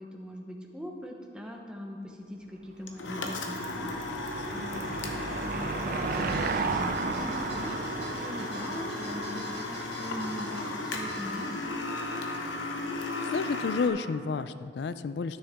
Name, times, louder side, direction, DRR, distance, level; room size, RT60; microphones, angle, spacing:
voice 1, 0.0-11.8, equal, 5° right, 0 dB, 0.8 m, -41 dB
sound 1, 2.9-13.9, left 2 dB, 75° left, 0.9 m, -35 dB
Car passing by / Engine, 3.2-10.0, right 4 dB, 50° right, 0.4 m, -34 dB
sound 2, 6.1-11.6, right 2 dB, 70° right, 1.8 m, -48 dB
voice 2, 13.2-15.4, left 5 dB, 60° left, 13 dB, 0.3 m, -31 dB
12.5 x 6.4 x 3.5 m, 2.2 s
head